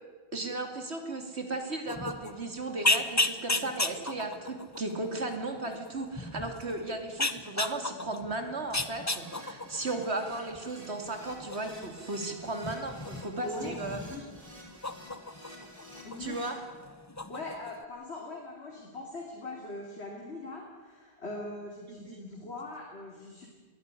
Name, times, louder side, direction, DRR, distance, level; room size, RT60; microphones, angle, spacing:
voice 1, 0.3-14.0 16.2-16.6 22.1-22.2, right 2 dB, 90° right, 5 dB, 3.0 m, -35 dB
sound 1, 1.9-16.4 16.7-17.8, left 2 dB, 15° left, 0.9 m, -35 dB
Keyboard (musical), 9.0-16.5, right 1 dB, 35° right, 5.9 m, -51 dB
voice 2, 13.4-14.2 16.0-16.4 17.3-23.5, left 2 dB, 85° left, -1 dB, 3.3 m, -41 dB
21.5 x 15.5 x 9.8 m, 1.4 s
omnidirectional pair, 1.1 m